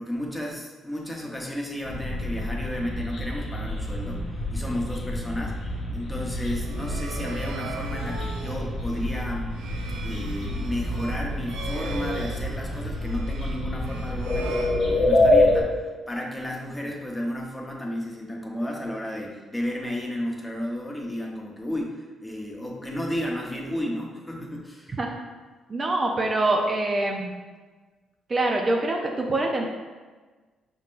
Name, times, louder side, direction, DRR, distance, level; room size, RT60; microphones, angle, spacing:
voice 1, 0.0-9.6 10.0-25.0, left 1 dB, 10° left, -1 dB, 0.8 m, -33 dB
sound 1, 1.8-15.6, left 1 dB, 60° left, 1.0 m, -27 dB
sound 2, 6.4-15.5, right 5 dB, 90° right, 0.4 m, -40 dB
voice 2, 25.7-27.3 28.3-29.7, right 2 dB, 35° right, 1 dB, 0.5 m, -25 dB
5.2 x 3.7 x 2.5 m, 1.3 s
cardioid pair, 90°, 0 cm